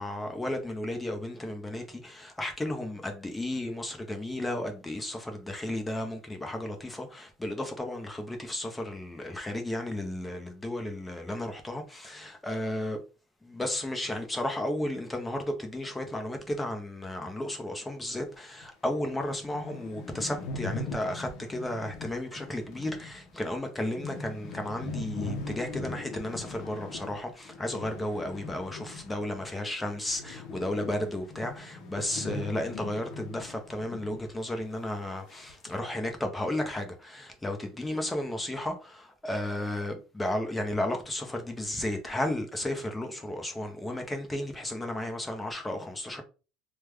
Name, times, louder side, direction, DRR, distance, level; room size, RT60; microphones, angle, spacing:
voice 1, 0.0-13.0 13.4-46.2, left 1 dB, 10° left, 0.7 m, -33 dB
sound 1, 18.6-18.7 19.0-19.1 19.3-29.5 29.8-34.3 34.6-34.7 35.3-35.7, left 2 dB, 50° left, 0.7 m, -40 dB
3.2 x 2.1 x 3.4 m
cardioid pair, 155°, 0 cm